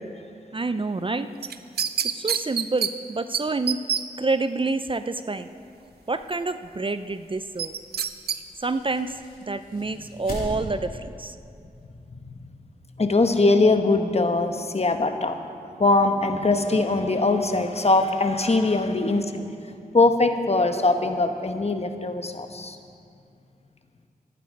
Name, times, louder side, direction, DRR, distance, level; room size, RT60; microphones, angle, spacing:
voice 1, 0.5-1.3 2.2-3.8 4.2-5.5 6.1-7.7 8.6-9.1 9.5-11.3, right 3 dB, 35° right, 11 dB, 0.5 m, -27 dB
sound 1, 1.4-2.9 3.3-3.4 3.7-4.0 7.6-8.4 8.8-8.9, right 8 dB, 85° right, 0.5 m, -25 dB
sound 2, 5.4-11.0, left 1 dB, 65° left, 3.8 m, -41 dB
voice 2, 13.0-15.4 15.8-19.4 19.9-22.8, left 3 dB, 40° left, 7 dB, 1.1 m, -21 dB
13.0 x 11.5 x 5.3 m, 2.5 s
cardioid pair, 45°, 16 cm